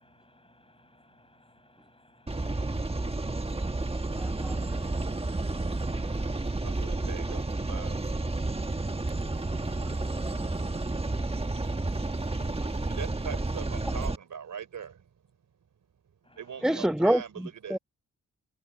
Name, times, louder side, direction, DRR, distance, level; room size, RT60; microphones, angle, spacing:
voice 1, 0.0-3.3 3.7-4.1 5.5-6.4 9.3-10.0 11.0-11.5 12.3-12.8 16.3-16.4, left 2 dB, 15° left, 7.3 m, -61 dB
sound 1, 2.3-14.2, right 2 dB, 20° right, 1.5 m, -31 dB
voice 2, 4.1-4.5 10.0-10.7 16.6-17.8, right 1 dB, ahead, 1.3 m, -28 dB
voice 3, 6.6-8.0 12.9-15.0 16.4-17.8, right 7 dB, 75° right, 4.1 m, -41 dB
cardioid pair, 75°, 31 cm